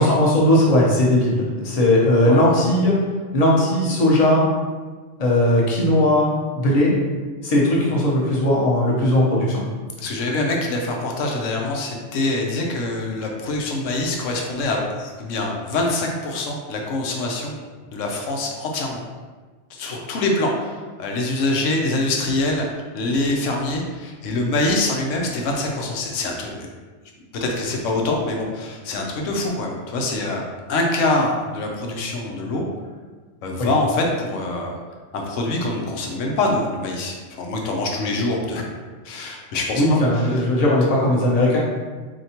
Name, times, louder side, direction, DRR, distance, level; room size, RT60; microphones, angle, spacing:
voice 1, 0.0-2.9 3.3-4.4 5.2-6.3 6.5-6.9 7.4-9.6 33.6-33.7 39.7-41.6, left 1 dB, 35° left, -5 dB, 0.8 m, -18 dB
voice 2, 2.3-2.6 10.0-17.5 17.9-19.0 19.7-22.7 22.9-26.7 27.4-30.4 30.7-32.7 33.4-34.8 35.1-38.7 39.0-40.4, left 2 dB, 85° left, 0 dB, 1.0 m, -24 dB
4.4 x 2.8 x 2.8 m, 1.4 s
omnidirectional pair, 1.3 m